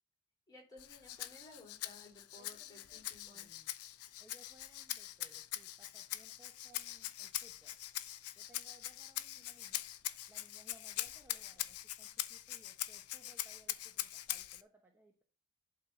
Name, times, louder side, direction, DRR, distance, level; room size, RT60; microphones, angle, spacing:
voice 1, 0.5-3.5, left 2 dB, 15° left, -1 dB, 4.4 m, -57 dB
Rattle (instrument), 0.8-14.6, left 14 dB, 80° left, 0.6 m, -43 dB
voice 2, 2.4-3.7 4.2-7.8 8.3-9.8 10.3-15.2, right 1 dB, 10° right, 1 dB, 1.1 m, -65 dB
11.5 x 4.0 x 5.7 m, 0.34 s
head